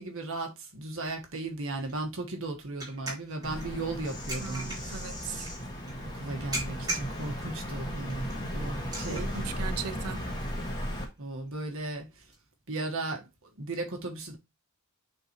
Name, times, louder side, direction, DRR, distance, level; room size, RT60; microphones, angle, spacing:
voice 1, 0.0-5.0 6.1-9.4 11.2-12.2 12.7-13.3 13.6-14.4, right 2 dB, 60° right, 1.5 m, -36 dB
sound 1, 1.1-12.4, right 2 dB, 20° right, 3.3 m, -43 dB
Bird vocalization bird call bird song, 3.4-11.0, equal, 20° left, 1.8 m, -36 dB
voice 2, 4.4-5.5 9.1-10.3, right 7 dB, 85° right, 0.6 m, -39 dB
9.0 x 3.9 x 3.0 m
head